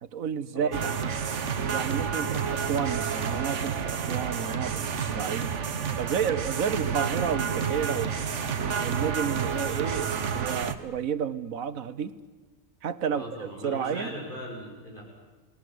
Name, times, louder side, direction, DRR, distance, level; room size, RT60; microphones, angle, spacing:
voice 1, 0.0-0.9 1.7-5.5 6.0-8.3 8.8-12.1 12.8-14.1, right 7 dB, 85° right, 14 dB, 1.5 m, -31 dB
voice 2, 0.5-0.9 13.1-15.0, equal, 35° left, -1 dB, 7.3 m, -39 dB
sound 1, 0.7-10.8, right 6 dB, 60° right, 1.5 m, -30 dB
30.0 x 19.5 x 8.0 m, 1.2 s
omnidirectional pair, 1.4 m